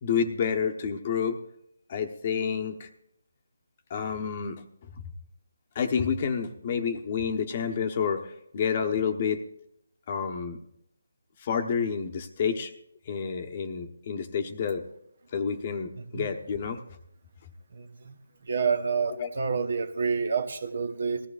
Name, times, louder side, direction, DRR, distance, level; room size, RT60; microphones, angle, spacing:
voice 1, 0.0-1.4 1.9-2.9 3.9-4.6 5.7-9.4 10.1-10.6 11.4-12.7 13.1-14.8 15.3-16.8 19.1-19.3, left 6 dB, 35° left, 6 dB, 1.0 m, -29 dB
voice 2, 17.7-18.1 18.5-21.2, right 5 dB, 55° right, 10 dB, 1.0 m, -28 dB
19.5 x 14.5 x 2.5 m, 0.77 s
figure-of-eight pair, 155°, 0 cm